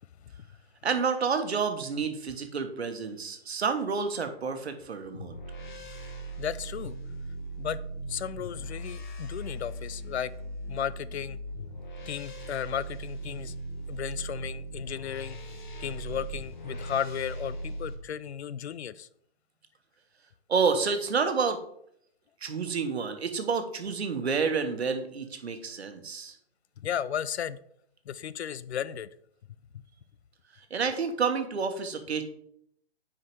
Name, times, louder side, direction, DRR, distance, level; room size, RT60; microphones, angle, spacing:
voice 1, 0.8-5.3 20.5-21.6 22.4-26.4 30.7-32.2, right 5 dB, 80° right, 8 dB, 1.2 m, -29 dB
sound 1, 5.1-18.0, right 1 dB, 45° left, 1.1 m, -39 dB
voice 2, 6.4-7.0 7.6-7.8 8.1-10.3 10.7-11.4 12.1-13.5 13.9-15.4 15.8-19.1 26.8-27.6 28.1-29.1, left 9 dB, 85° left, 17 dB, 0.5 m, -34 dB
6.1 x 4.8 x 4.7 m, 0.69 s
hypercardioid pair, 175°, 32 cm